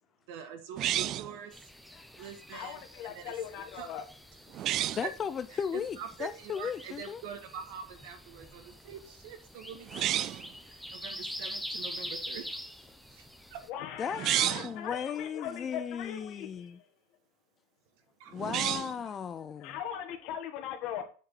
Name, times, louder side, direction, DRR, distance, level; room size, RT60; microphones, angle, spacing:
voice 1, 0.3-1.7 2.2-3.3 3.7-3.9 4.8-5.1 5.5-12.7 13.1-13.6 18.2-18.4, right 7 dB, 65° right, 1.8 m, -45 dB
sound 1, 0.8-1.4 4.5-5.1 9.9-10.5 14.1-14.8 18.4-19.0, right 13 dB, 40° right, 0.3 m, -30 dB
sound 2, 1.5-13.7, equal, ahead, 0.8 m, -45 dB
voice 2, 1.9-2.3 4.5-7.2 14.0-16.8 18.3-19.8, left 7 dB, 25° left, 0.4 m, -36 dB
voice 3, 2.5-4.0 13.7-16.8 19.6-21.0, left 9 dB, 55° left, 1.6 m, -39 dB
7.7 x 5.1 x 5.6 m
supercardioid pair, 135°, 0 cm